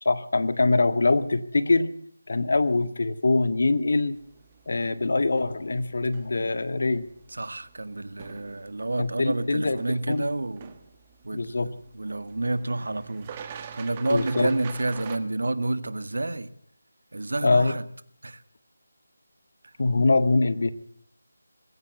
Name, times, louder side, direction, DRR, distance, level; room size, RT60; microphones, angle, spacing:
voice 1, 0.0-1.9 2.3-4.2 4.7-7.1 9.0-9.8 10.1-10.3 11.3-11.7 14.1-14.5 17.4-17.7 19.8-20.7, left 3 dB, 60° left, 12 dB, 1.8 m, -23 dB
sound 1, 4.1-15.2, right 7 dB, 25° right, 1.7 m, -45 dB
voice 2, 7.3-10.8 11.2-16.5 17.1-17.8 18.2-18.4 19.6-19.7, right 2 dB, 75° right, 13 dB, 1.9 m, -29 dB
20.5 x 16.5 x 8.3 m, 0.62 s
figure-of-eight pair, 165°, 0 cm